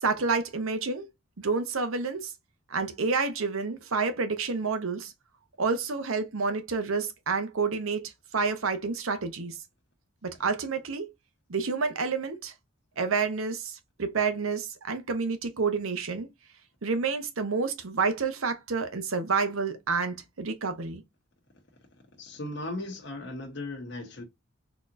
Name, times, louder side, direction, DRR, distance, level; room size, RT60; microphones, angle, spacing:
voice 1, 0.0-1.1 1.4-2.3 2.7-5.1 5.6-9.6 10.2-11.1 11.5-12.5 13.0-16.3 16.8-21.0, right 4 dB, 80° right, 0.8 m, -29 dB
voice 2, 22.2-24.2, left 2 dB, 55° left, 1.1 m, -37 dB
4.0 x 2.9 x 2.5 m
head